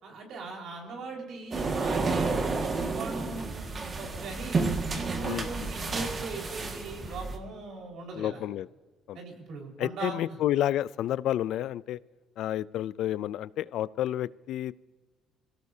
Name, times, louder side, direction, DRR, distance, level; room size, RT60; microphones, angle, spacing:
voice 1, 0.0-8.4 9.1-10.4, right 3 dB, 70° right, 0 dB, 4.8 m, -40 dB
sound 1, 1.5-7.4, right 3 dB, 35° right, 1.8 m, -31 dB
voice 2, 8.2-8.7 9.1-9.2 9.8-12.0 12.4-14.7, left 12 dB, 75° left, 19 dB, 0.4 m, -30 dB
25.0 x 17.0 x 2.8 m, 1.3 s
cardioid pair, 120°, 0 cm